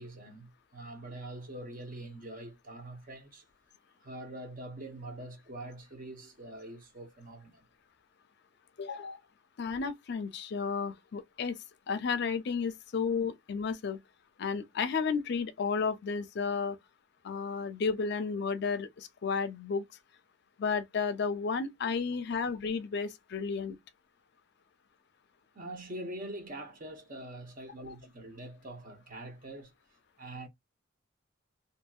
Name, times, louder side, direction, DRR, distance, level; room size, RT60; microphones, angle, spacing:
voice 1, 0.0-3.4 4.0-7.6 25.5-29.7 30.2-30.5, right 1 dB, 45° right, 0.8 m, -44 dB
voice 2, 8.8-9.2 9.6-11.6 11.9-14.0 14.4-16.8 17.2-19.8 20.6-23.8 27.9-28.0, left 5 dB, 60° left, 0.4 m, -32 dB
2.7 x 2.7 x 2.3 m
head